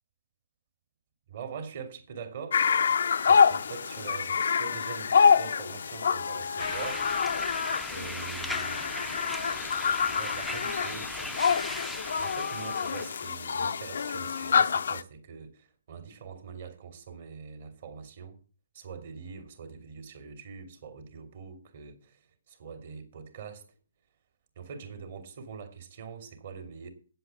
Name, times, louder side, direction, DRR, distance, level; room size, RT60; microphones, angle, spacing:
voice 1, 1.3-2.6 3.3-7.0 7.9-11.4 12.2-18.4 18.7-23.7 24.6-26.9, right 6 dB, 50° right, 2.6 m, -43 dB
sound 1, 2.5-15.0, left 6 dB, 65° left, 0.5 m, -27 dB
sound 2, 6.6-13.3, left 1 dB, ahead, 0.5 m, -39 dB
8.9 x 7.9 x 6.9 m
hypercardioid pair, 140°, 0 cm